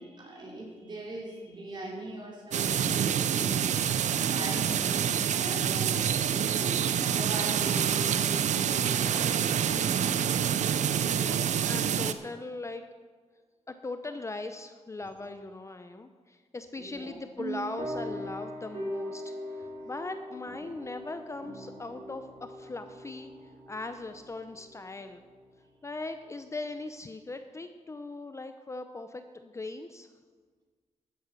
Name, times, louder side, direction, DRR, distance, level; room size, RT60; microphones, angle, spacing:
voice 1, 0.0-3.7 4.3-10.1 16.8-17.2, right 1 dB, 40° right, -3 dB, 4.3 m, -41 dB
sound 1, 2.5-12.1, right 8 dB, 80° right, 0.6 m, -27 dB
voice 2, 11.1-12.8 13.7-23.3 23.7-25.2 25.8-30.1, left 3 dB, 25° left, 8 dB, 0.6 m, -39 dB
sound 2, 17.4-25.5, equal, 60° right, 3.1 m, -41 dB
13.0 x 8.2 x 6.1 m, 1.5 s
cardioid pair, 110°, 12 cm